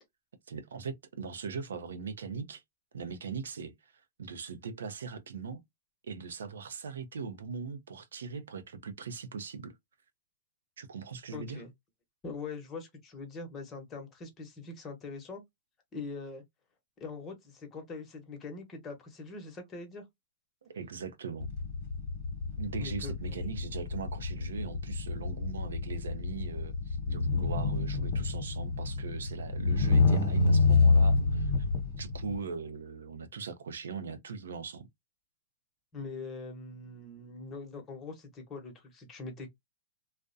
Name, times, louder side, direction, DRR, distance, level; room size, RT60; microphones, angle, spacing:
voice 1, 0.5-2.6 2.9-3.9 4.2-5.6 6.0-9.8 10.8-11.6 20.6-21.5 22.6-31.5 32.0-34.9, right 5 dB, 90° right, 0.5 m, -40 dB
voice 2, 11.3-11.7 12.2-15.4 15.9-16.4 17.0-20.0 22.8-23.4 35.9-39.5, left 4 dB, 25° left, 0.9 m, -42 dB
sound 1, 21.4-32.4, left 3 dB, 55° left, 0.9 m, -28 dB
2.3 x 2.1 x 2.5 m
hypercardioid pair, 135°, 0 cm